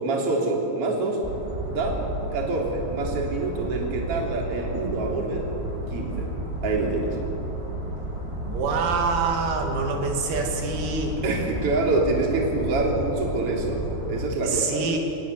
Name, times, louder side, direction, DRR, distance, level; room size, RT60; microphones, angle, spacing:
voice 1, 0.0-1.2 1.7-2.0 2.3-5.5 5.9-6.3 6.6-7.2 11.2-14.8, right 3 dB, 30° right, 0 dB, 3.8 m, -26 dB
sound 1, 1.2-14.3, right 1 dB, 15° right, 1.1 m, -32 dB
voice 2, 8.4-11.2 14.4-15.0, right 4 dB, 85° right, 2 dB, 5.2 m, -26 dB
28.0 x 17.0 x 9.9 m, 3.0 s
omnidirectional pair, 6.0 m